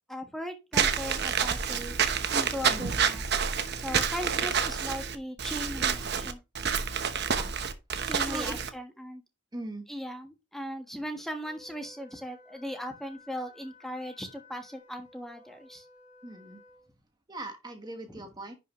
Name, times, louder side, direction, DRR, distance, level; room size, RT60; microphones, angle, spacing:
voice 1, 0.1-1.9 2.3-3.2 3.8-6.4 8.0-9.2 9.9-15.8 18.1-18.2, equal, ahead, 4 dB, 1.4 m, -38 dB
Walk footsteps / Squeak, 0.7-8.7, right 7 dB, 55° right, 1.0 m, -28 dB
voice 2, 8.2-8.6 9.5-9.8 16.2-16.6 17.3-18.5, right 1 dB, 20° right, 5 dB, 1.3 m, -39 dB
Wind instrument woodwind instrument, 11.4-16.9, left 2 dB, 40° left, 5.5 m, -56 dB
10.5 x 5.8 x 3.1 m, 0.26 s
head